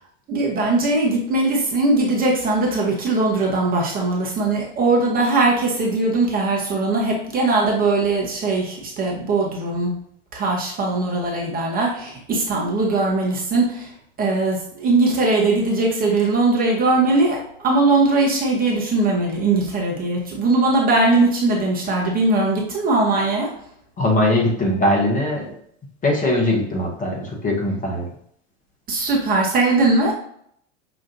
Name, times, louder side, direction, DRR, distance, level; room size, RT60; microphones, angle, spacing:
voice 1, 0.3-10.0 10.3-13.9 14.2-23.5 28.9-30.1, right 2 dB, 25° right, -2 dB, 1.0 m, -20 dB
voice 2, 24.0-25.5 26.0-28.1, left 1 dB, 20° left, -1 dB, 0.9 m, -20 dB
5.8 x 2.5 x 2.6 m, 0.68 s
figure-of-eight pair, 90°, 38 cm